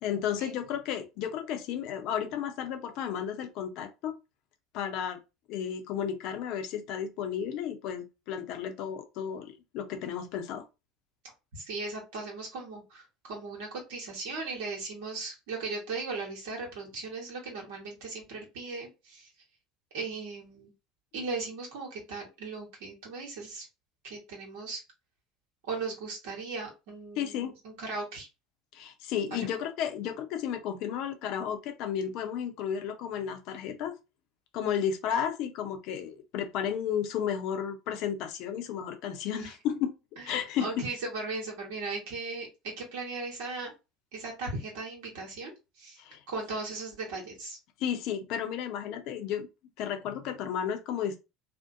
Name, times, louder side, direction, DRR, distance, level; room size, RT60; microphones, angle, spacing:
voice 1, 0.0-4.2 4.7-5.2 5.5-10.6 27.2-27.5 28.7-33.9 34.5-39.9 40.2-40.8 46.0-46.2 47.8-49.5 49.8-51.2, left 8 dB, 60° left, 0.6 m, -33 dB
voice 2, 11.5-19.3 19.9-20.7 21.1-23.7 24.0-24.8 25.6-28.3 29.3-29.5 39.3-39.4 40.3-43.7 44.1-45.5 45.8-46.0 46.3-47.6, right 3 dB, 70° right, 1.0 m, -37 dB
2.6 x 2.1 x 2.5 m
hypercardioid pair, 70°, 0 cm